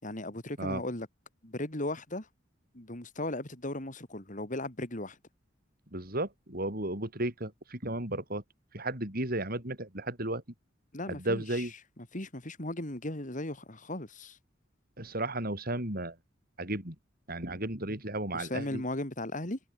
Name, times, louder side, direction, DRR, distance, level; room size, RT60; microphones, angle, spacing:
voice 1, 0.0-1.1 1.4-2.3 2.7-5.2 10.9-11.7 12.0-14.4 18.3-19.6, left 1 dB, 40° left, 3.6 m, -37 dB
voice 2, 5.9-8.4 8.7-10.4 11.1-11.7 15.0-16.2 16.6-17.0 17.3-18.8, right 1 dB, 50° right, 6.2 m, -34 dB
head